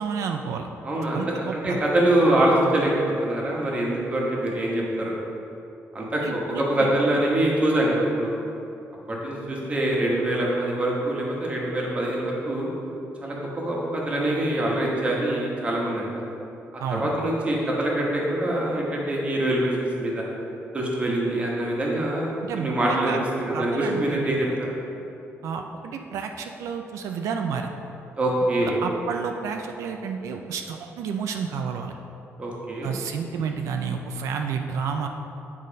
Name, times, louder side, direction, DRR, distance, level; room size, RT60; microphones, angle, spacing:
voice 1, 0.0-0.7 1.1-1.8 6.2-6.9 16.8-17.1 22.5-23.2 23.5-24.6 25.4-27.7 28.6-32.0 32.8-35.1, right 6 dB, 90° right, 4 dB, 0.4 m, -30 dB
voice 2, 0.8-1.2 1.5-5.1 5.9-6.2 6.6-8.4 9.1-12.7 13.2-16.2 16.9-20.2 20.7-23.1 23.4-24.7 28.2-28.7 32.4-32.9, right 1 dB, 25° right, -3 dB, 1.2 m, -24 dB
8.6 x 4.1 x 5.1 m, 2.8 s
cardioid pair, 170°, 5 cm